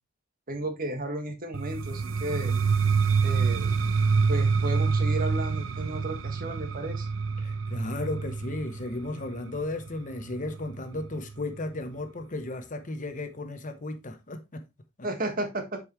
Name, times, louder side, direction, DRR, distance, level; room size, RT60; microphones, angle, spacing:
voice 1, 0.5-2.6 3.2-3.8 4.3-7.1 15.0-15.8, right 1 dB, 45° right, 1.6 m, -33 dB
sound 1, 1.5-11.3, right 5 dB, 70° right, 0.6 m, -27 dB
voice 2, 7.4-14.6, left 2 dB, 40° left, 0.9 m, -35 dB
8.1 x 5.5 x 3.1 m
head